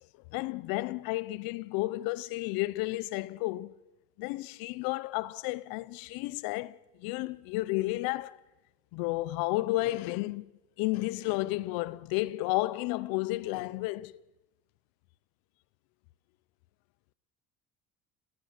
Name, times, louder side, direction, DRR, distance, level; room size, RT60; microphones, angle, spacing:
voice 1, 0.3-3.7 4.2-8.4 8.9-10.5 10.8-14.2, left 19 dB, 85° left, 0.8 m, -32 dB
20.0 x 18.5 x 8.1 m
cardioid pair, 120°, 34 cm